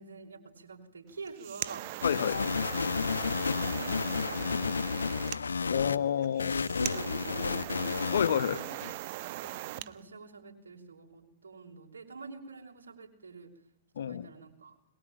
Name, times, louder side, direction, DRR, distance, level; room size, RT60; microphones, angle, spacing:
voice 1, 0.0-1.9 2.4-2.6 3.6-5.0 5.5-6.1 6.7-7.9 8.5-8.6 9.3-13.5 14.0-14.7, right 4 dB, 85° right, 2 dB, 6.2 m, -47 dB
sound 1, 1.1-9.9, right 17 dB, 50° right, 1.3 m, -40 dB
sound 2, 2.0-6.0 6.4-8.9, left 5 dB, 90° left, 1.0 m, -32 dB
voice 2, 2.0-2.4 5.7-6.6 8.1-8.6 14.0-14.3, left 9 dB, 75° left, 14 dB, 1.4 m, -29 dB
22.5 x 22.5 x 9.0 m, 0.78 s
hypercardioid pair, 115°, 0 cm